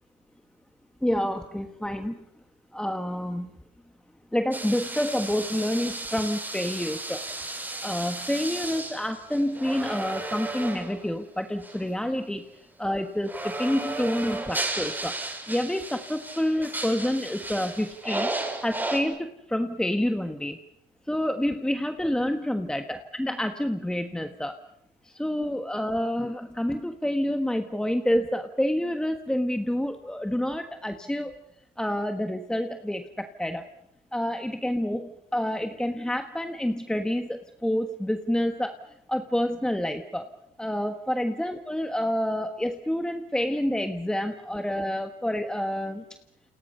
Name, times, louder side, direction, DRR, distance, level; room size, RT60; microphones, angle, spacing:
voice 1, 1.0-2.2 2.7-3.5 4.3-7.2 7.8-12.4 12.8-15.2 15.5-18.3 18.6-20.6 21.1-24.6 25.0-31.3 31.8-33.6 34.1-38.8 39.1-40.3 40.6-46.0, left 1 dB, 5° left, 6 dB, 1.4 m, -28 dB
sound 1, 4.5-11.1 11.6-11.8 13.2-19.0, right 2 dB, 10° right, 6.9 m, -34 dB
29.0 x 29.0 x 5.6 m, 0.81 s
cardioid pair, 110°, 17 cm